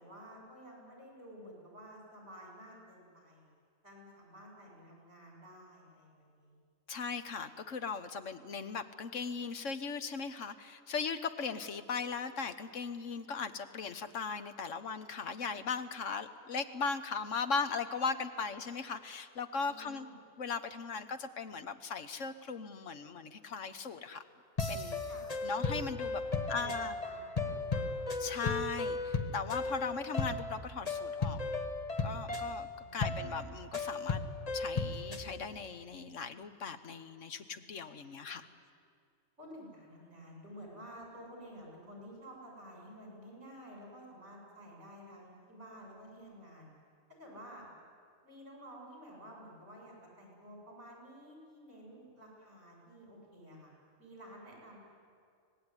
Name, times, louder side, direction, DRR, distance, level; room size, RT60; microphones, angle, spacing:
voice 1, 0.0-3.5 3.8-6.6 19.6-20.2 25.1-25.3 26.2-28.0 32.8-33.4 39.4-46.7 47.2-47.7 48.2-53.7 54.0-54.8, equal, 55° right, -2 dB, 8.1 m, -52 dB
voice 2, 6.9-20.1 20.4-24.2 24.7-25.0 25.4-26.2 26.5-26.9 28.2-31.4 32.0-34.2 34.5-38.5, left 5 dB, 65° left, 10 dB, 1.5 m, -38 dB
sound 1, 24.6-35.3, left 3 dB, 30° left, 1.4 m, -36 dB
25.0 x 18.5 x 9.9 m, 2.3 s
omnidirectional pair, 1.4 m